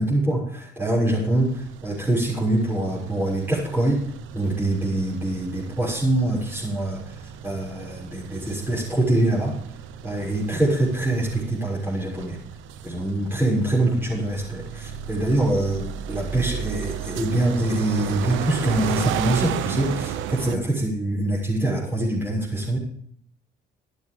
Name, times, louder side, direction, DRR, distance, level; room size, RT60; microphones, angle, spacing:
voice 1, 0.0-4.0 4.3-7.0 7.4-9.6 10.0-12.4 12.8-22.8, right 1 dB, 10° right, -5 dB, 6.6 m, -24 dB
sound 1, 1.1-20.6, right 9 dB, 80° right, 0.9 m, -34 dB
14.0 x 12.0 x 3.8 m, 0.65 s
cardioid pair, 80°, 20 cm